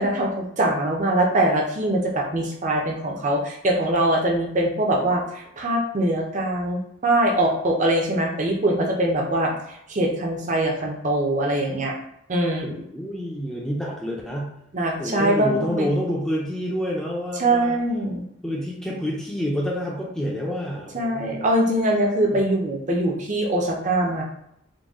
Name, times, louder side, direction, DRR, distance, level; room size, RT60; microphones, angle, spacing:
voice 1, 0.0-9.5 9.9-11.9 12.3-12.7 14.7-15.9 17.4-18.3 20.9-24.2, right 1 dB, 40° right, 0 dB, 0.6 m, -22 dB
voice 2, 12.6-14.5 15.0-17.8 18.4-21.4 22.3-22.4, equal, 5° left, -3 dB, 0.5 m, -28 dB
4.0 x 2.2 x 3.5 m, 0.77 s
head